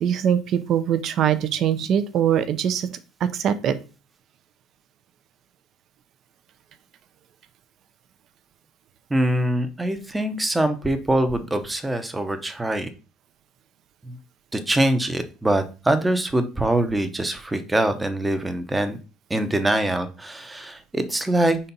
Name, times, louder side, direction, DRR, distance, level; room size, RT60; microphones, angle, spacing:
voice 1, 0.0-3.7, right 9 dB, 45° right, 12 dB, 0.7 m, -22 dB
voice 2, 9.1-12.9 14.0-14.2 14.5-19.0 19.3-21.6, right 1 dB, 10° right, 9 dB, 0.8 m, -23 dB
5.1 x 4.3 x 5.4 m, 0.33 s
cardioid pair, 150°, 0 cm